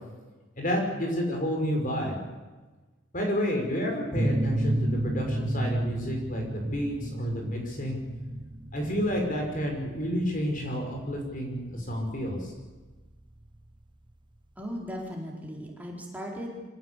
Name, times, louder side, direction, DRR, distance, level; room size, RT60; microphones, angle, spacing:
voice 1, 0.6-2.2 3.1-8.0 8.7-12.5, equal, 40° left, 2 dB, 5.8 m, -30 dB
sound 1, 4.1-13.5, right 1 dB, 25° right, 1.0 m, -32 dB
voice 2, 14.6-16.6, equal, 10° right, -2 dB, 4.4 m, -37 dB
25.0 x 17.0 x 8.3 m, 1.3 s
head